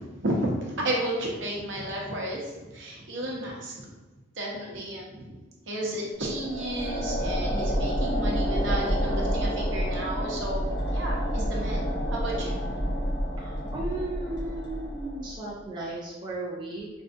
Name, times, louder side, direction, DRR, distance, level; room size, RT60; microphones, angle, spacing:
voice 1, 0.0-3.7 4.4-5.4 5.7-11.8 12.1-12.6 13.6-13.8, right 1 dB, 70° right, -2 dB, 0.8 m, -32 dB
sound 1, 6.2-15.5, equal, 60° left, 1.1 m, -29 dB
voice 2, 13.4-16.9, right 2 dB, 25° right, -4 dB, 0.4 m, -35 dB
3.4 x 2.6 x 2.5 m, 1.2 s
head